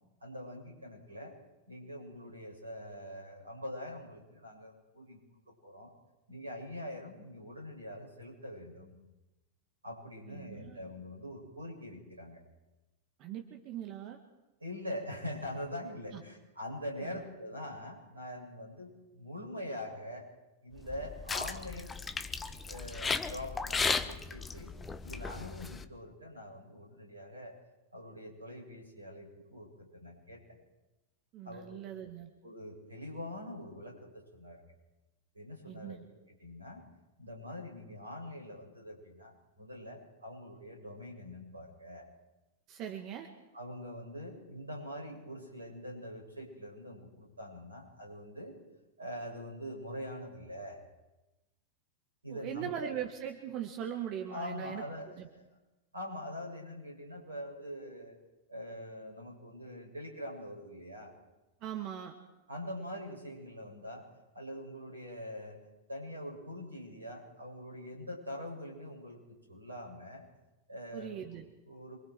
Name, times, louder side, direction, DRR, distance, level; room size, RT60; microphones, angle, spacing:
voice 1, 0.2-1.3 1.7-5.2 5.6-5.9 6.3-8.9 9.8-12.4 14.6-20.3 20.6-21.9 22.7-24.7 25.0-27.5 27.9-30.4 31.4-31.8 32.4-34.6 35.3-36.0 36.3-36.8 37.2-42.1 43.5-48.6 49.0-50.8 52.2-52.9 54.3-55.4 55.9-58.2 58.5-61.1 62.5-64.0 64.3-65.6 65.9-70.2 70.7-72.0, left 1 dB, 80° right, 1 dB, 7.6 m, -44 dB
voice 2, 10.3-10.8 13.2-14.2 16.1-16.2 17.0-17.1 31.3-32.3 35.7-36.0 42.7-43.3 52.3-54.8 55.2-55.3 61.6-62.2 70.9-71.5, right 10 dB, 40° right, 5 dB, 2.0 m, -40 dB
sound 1, 20.8-25.8, left 4 dB, 15° left, 1.3 m, -36 dB
27.5 x 24.0 x 4.8 m, 1.0 s
figure-of-eight pair, 90°, 0 cm